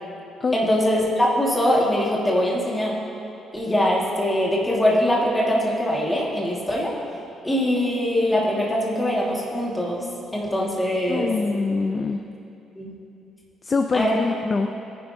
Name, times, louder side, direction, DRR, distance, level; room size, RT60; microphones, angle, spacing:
voice 1, 0.5-2.9 3.5-6.9 7.4-10.1 10.3-11.3 12.8-12.9 13.9-14.2, equal, 10° left, -4 dB, 1.8 m, -22 dB
voice 2, 11.1-12.2 13.6-14.7, left 4 dB, 25° left, 6 dB, 0.4 m, -24 dB
18.5 x 10.0 x 2.7 m, 2.8 s
cardioid pair, 170°, 0 cm